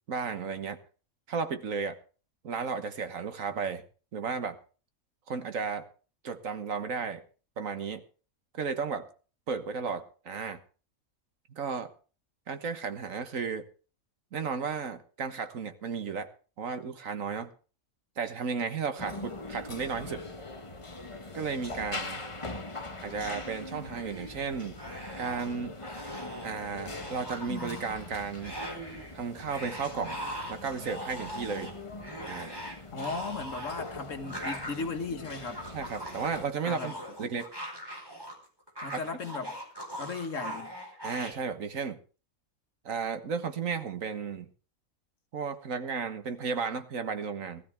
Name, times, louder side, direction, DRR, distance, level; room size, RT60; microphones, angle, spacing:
voice 1, 0.1-0.8 1.3-2.0 2.4-3.8 4.1-4.6 5.3-5.9 6.2-7.2 7.6-8.0 8.5-9.1 9.5-10.6 11.5-11.9 12.5-13.7 14.3-16.3 16.6-17.5 18.2-20.2 21.3-22.2 23.0-24.8 25.2-25.8 26.4-28.6 29.1-30.2 30.5-31.7 32.2-32.5 35.7-36.9 37.2-37.5 38.9-39.0 41.0-42.0 42.8-44.5 45.3-47.6, right 5 dB, 65° right, 1.6 m, -34 dB
sound 1, 19.0-36.5, left 2 dB, 25° left, 1.2 m, -42 dB
sound 2, 23.9-24.4 24.7-25.5 25.8-26.5 26.8-28.1 28.4-29.1 29.5-38.3 38.6-41.3, equal, 15° right, 4.4 m, -41 dB
voice 2, 32.9-35.6 36.6-37.0 38.8-39.6 40.0-40.7, left 4 dB, 60° left, 1.8 m, -36 dB
19.0 x 13.0 x 3.4 m
omnidirectional pair, 1.5 m